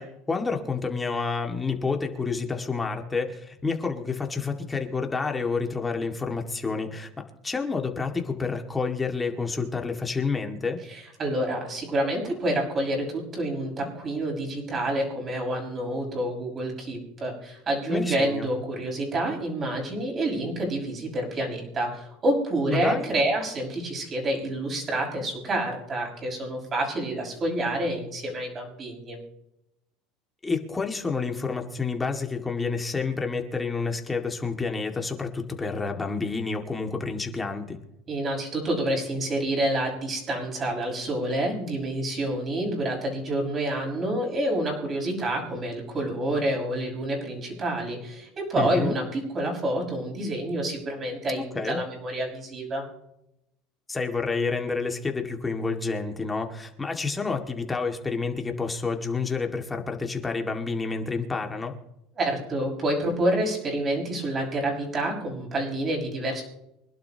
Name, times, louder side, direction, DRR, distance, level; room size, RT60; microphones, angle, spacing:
voice 1, 0.0-7.1 7.4-10.8 17.9-18.5 22.7-23.1 30.4-37.8 48.6-48.9 51.4-51.8 53.9-61.7, left 4 dB, 15° left, 3 dB, 2.1 m, -29 dB
voice 2, 10.9-29.2 38.1-52.9 62.2-66.4, right 1 dB, 30° right, 0 dB, 6.0 m, -28 dB
25.0 x 11.5 x 3.0 m, 0.85 s
supercardioid pair, 115°, 0 cm